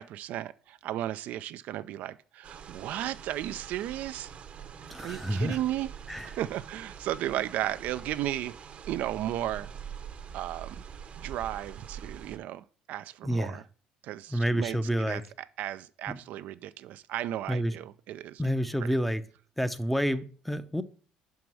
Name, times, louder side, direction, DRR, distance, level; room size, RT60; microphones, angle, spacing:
voice 1, 0.0-4.3 5.0-5.9 6.2-8.5 8.9-9.7 10.3-10.8 11.2-13.6 14.0-15.2 15.6-18.4 18.8-18.9, right 13 dB, 65° right, 0.3 m, -34 dB
sound 1, 2.4-12.4, right 7 dB, 45° right, 0.8 m, -44 dB
voice 2, 4.9-5.6 6.1-6.3 13.2-13.6 14.3-15.2 16.1-16.2 17.5-17.8 18.4-19.2 19.6-20.8, equal, 5° left, 0.6 m, -29 dB
5.1 x 4.7 x 6.1 m
supercardioid pair, 80°, 3 cm